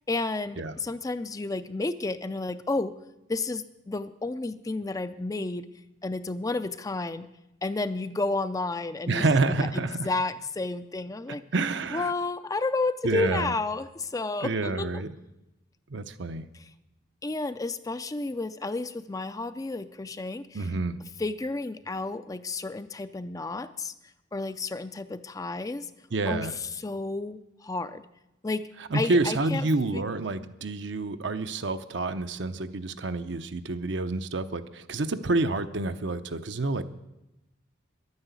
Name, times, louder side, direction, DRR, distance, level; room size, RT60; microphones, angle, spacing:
voice 1, 0.1-2.9 3.3-5.7 6.0-7.3 7.6-11.4 11.9-15.0 17.2-20.6 21.2-23.9 24.3-25.9 26.3-26.5 26.8-28.0 28.4-28.7 28.9-29.7 29.9-30.0, left 3 dB, 20° left, 11 dB, 0.4 m, -31 dB
voice 2, 9.1-10.1 11.5-12.1 13.0-13.5 14.4-15.1 15.9-16.5 20.5-21.0 26.1-26.6 28.9-36.8, right 3 dB, 65° right, 9 dB, 0.8 m, -28 dB
11.5 x 9.7 x 8.2 m, 0.94 s
head